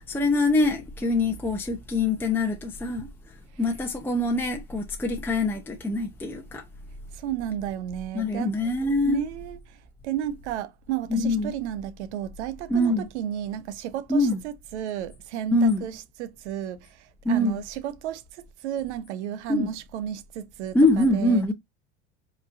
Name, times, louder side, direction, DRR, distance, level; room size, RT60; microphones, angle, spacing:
voice 1, 0.0-3.1 3.6-6.6 8.1-9.2 11.1-11.5 12.7-13.1 14.1-14.4 15.5-15.8 17.2-17.6 19.5-19.7 20.7-21.5, left 2 dB, 5° left, 0.7 m, -24 dB
voice 2, 7.1-8.5 9.0-21.4, right 11 dB, 75° right, 0.8 m, -33 dB
5.1 x 3.1 x 2.5 m
hypercardioid pair, 95°, 34 cm